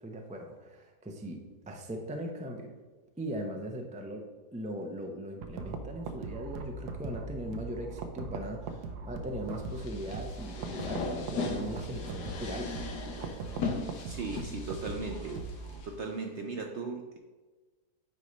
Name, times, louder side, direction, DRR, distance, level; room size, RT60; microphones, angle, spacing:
voice 1, 0.0-2.8 3.2-4.2 4.5-12.7, right 1 dB, 10° right, 2 dB, 0.3 m, -39 dB
sound 1, 5.4-15.8, right 3 dB, 80° right, 1.3 m, -40 dB
sound 2, 9.7-15.9, left 4 dB, 85° left, 1.6 m, -38 dB
voice 2, 14.0-15.4 15.8-17.2, right 4 dB, 65° right, 3 dB, 0.7 m, -37 dB
9.2 x 3.2 x 5.2 m, 1.3 s
omnidirectional pair, 1.7 m